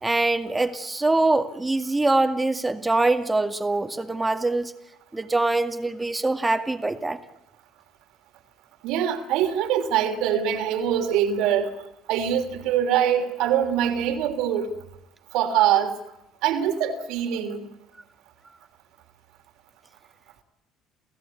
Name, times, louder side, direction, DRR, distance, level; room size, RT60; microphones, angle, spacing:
voice 1, 0.0-4.7 5.1-7.2, right 2 dB, 15° right, 8 dB, 2.2 m, -23 dB
voice 2, 8.8-11.8 12.1-14.7 15.3-15.9 16.4-17.7, right 9 dB, 80° right, 6 dB, 3.3 m, -23 dB
29.5 x 16.0 x 8.6 m, 0.86 s
supercardioid pair, 90°, 0 cm